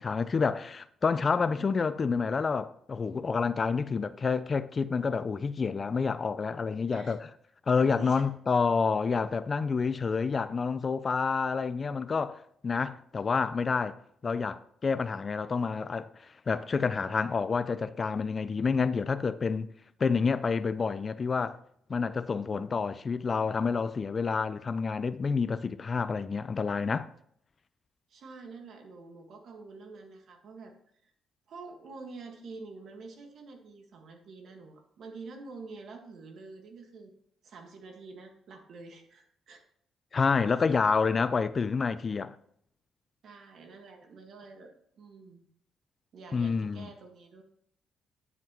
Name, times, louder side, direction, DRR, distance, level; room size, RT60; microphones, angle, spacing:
voice 1, 0.0-7.3 7.7-14.0 14.2-19.7 20.0-21.6 21.9-27.1 40.1-42.4 46.3-46.9, left 5 dB, 35° left, 0.4 m, -28 dB
voice 2, 7.7-8.3 28.1-30.7 31.0-31.1 31.5-37.1 37.4-39.6 43.2-45.5 46.1-47.4, right 4 dB, 65° right, 1.7 m, -47 dB
9.6 x 7.2 x 3.0 m
cardioid pair, 90°, 0 cm